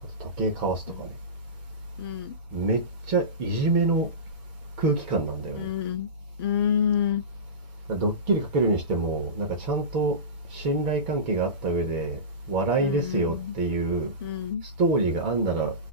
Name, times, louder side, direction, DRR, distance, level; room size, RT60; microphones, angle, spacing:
voice 1, 0.2-1.1 2.5-4.1 4.8-5.7 7.9-10.2 10.5-12.2 12.5-14.1 14.8-15.7, right 2 dB, 20° right, 0.6 m, -26 dB
voice 2, 2.0-2.4 5.6-6.1 6.4-7.2 12.8-13.5 14.2-14.6, left 9 dB, 40° left, 0.5 m, -28 dB
2.4 x 2.3 x 3.9 m
hypercardioid pair, 160°, 21 cm